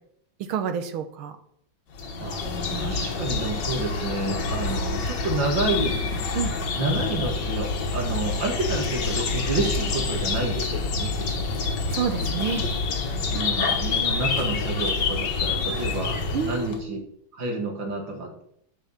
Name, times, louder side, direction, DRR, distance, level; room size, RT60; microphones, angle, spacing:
voice 1, 0.5-1.4 2.7-2.9 6.3-6.5 11.9-12.7 16.3-17.0, right 6 dB, 85° right, 8 dB, 1.9 m, -29 dB
sound 1, 2.0-16.8, left 4 dB, 60° left, 1.8 m, -27 dB
voice 2, 2.7-6.0 6.7-11.7 13.3-17.0 17.3-18.4, right 2 dB, 60° right, 2 dB, 2.8 m, -29 dB
10.5 x 6.0 x 7.3 m, 0.71 s
omnidirectional pair, 2.3 m